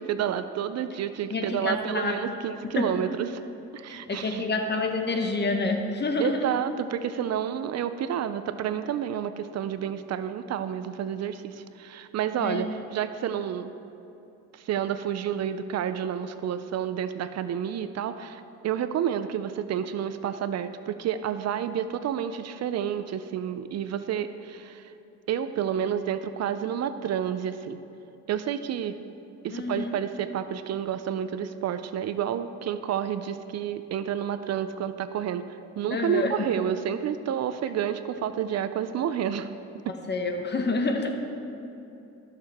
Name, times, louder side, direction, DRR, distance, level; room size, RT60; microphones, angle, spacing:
voice 1, 0.0-3.4 3.7-4.5 6.2-13.7 14.5-24.8 25.3-27.8 28.3-29.0 29.4-39.5 39.9-40.0, right 9 dB, 60° right, 11 dB, 0.5 m, -30 dB
voice 2, 1.3-2.2 2.6-2.9 3.9-6.5 12.4-12.6 29.5-30.0 35.9-36.5 40.1-41.1, left 3 dB, 35° left, 4 dB, 1.1 m, -28 dB
14.0 x 6.6 x 3.5 m, 2.8 s
cardioid pair, 90°, 30 cm